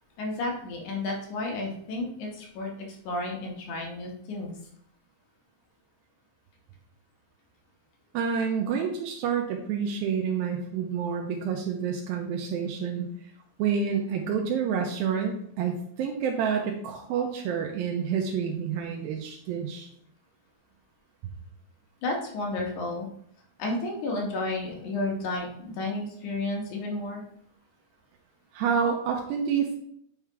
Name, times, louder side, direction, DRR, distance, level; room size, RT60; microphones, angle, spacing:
voice 1, 0.2-2.7 3.0-4.5 22.0-23.1 23.6-27.2, left 2 dB, 60° left, 0 dB, 2.5 m, -32 dB
voice 2, 8.1-13.1 13.6-19.9 28.5-29.8, right 7 dB, 80° right, 2 dB, 2.5 m, -28 dB
9.1 x 3.5 x 4.7 m, 0.68 s
omnidirectional pair, 4.3 m